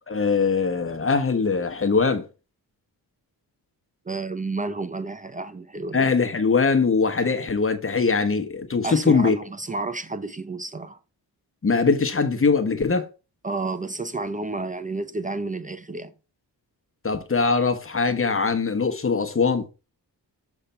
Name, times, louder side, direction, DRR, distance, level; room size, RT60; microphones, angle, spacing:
voice 1, 0.1-2.3 5.9-9.4 11.6-13.1 17.0-19.6, left 4 dB, 30° left, 1.1 m, -22 dB
voice 2, 4.1-6.0 8.8-11.0 13.4-16.1, right 3 dB, 20° right, 0.5 m, -31 dB
6.6 x 3.5 x 5.6 m
cardioid pair, 85°, 40 cm